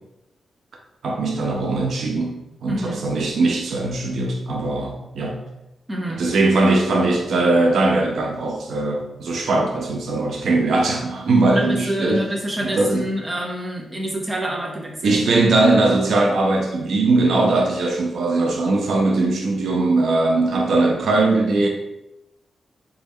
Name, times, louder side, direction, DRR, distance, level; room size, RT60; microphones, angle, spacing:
voice 1, 1.0-5.4 6.1-12.2 12.6-13.0 15.0-21.7, right 2 dB, 65° right, 1 dB, 0.5 m, -20 dB
voice 2, 2.7-3.0 5.9-6.2 11.5-15.2, equal, 15° right, -2 dB, 0.7 m, -27 dB
4.0 x 2.3 x 3.5 m, 0.91 s
wide cardioid pair, 170°, 0 cm